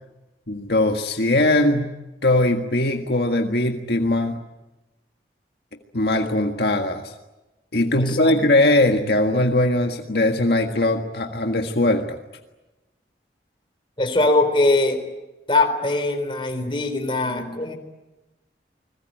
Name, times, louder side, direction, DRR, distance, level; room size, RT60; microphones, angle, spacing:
voice 1, 0.5-1.9 2.2-4.4 5.9-7.1 7.7-12.2, left 1 dB, 65° left, 3 dB, 1.7 m, -20 dB
voice 2, 8.0-8.3 14.0-15.0 15.5-17.7, left 2 dB, 30° left, 6 dB, 4.0 m, -21 dB
29.5 x 21.0 x 9.2 m, 1.1 s
head